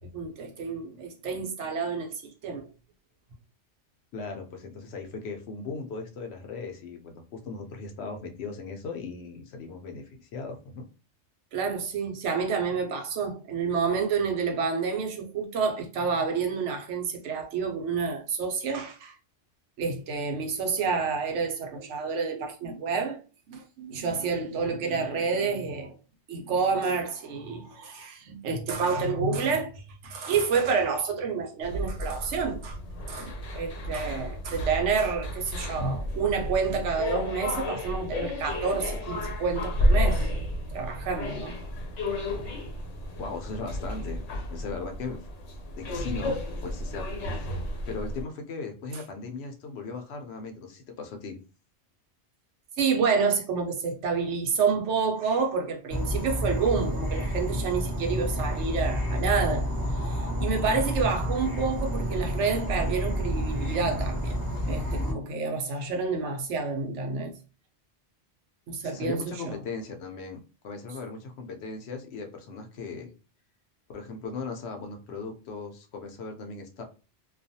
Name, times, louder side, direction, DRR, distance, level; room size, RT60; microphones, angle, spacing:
voice 1, 0.1-2.6 11.5-19.1 19.8-23.2 23.5-25.9 26.3-32.8 33.1-40.3 40.7-41.6 52.8-59.7 60.0-64.4 64.7-67.3 68.7-69.6, right 5 dB, 80° right, 1.0 m, -29 dB
voice 2, 4.1-10.8 43.2-44.2 44.5-45.2 45.8-47.6 47.9-51.4 68.8-73.1 73.9-76.8, left 4 dB, 70° left, 0.8 m, -38 dB
sound 1, 31.6-48.2, left 1 dB, 85° left, 1.1 m, -31 dB
Insect / Frog, 55.9-65.1, equal, 20° right, 0.9 m, -29 dB
2.4 x 2.3 x 2.6 m
omnidirectional pair, 1.2 m